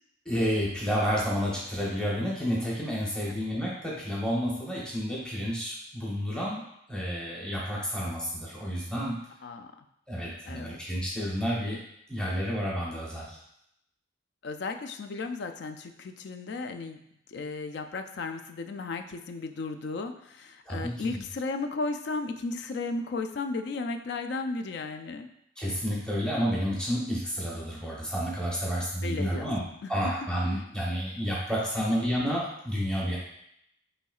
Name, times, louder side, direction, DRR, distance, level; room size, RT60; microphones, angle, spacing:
voice 1, 0.2-6.6 6.9-9.2 10.1-11.8 12.1-13.4 20.7-21.2 25.6-33.2, equal, 5° left, -6 dB, 0.9 m, -30 dB
voice 2, 10.5-10.8 14.4-17.0 17.3-25.3 29.0-29.5 30.0-30.1, left 3 dB, 55° left, 7 dB, 0.3 m, -34 dB
5.6 x 3.2 x 2.4 m, 0.76 s
head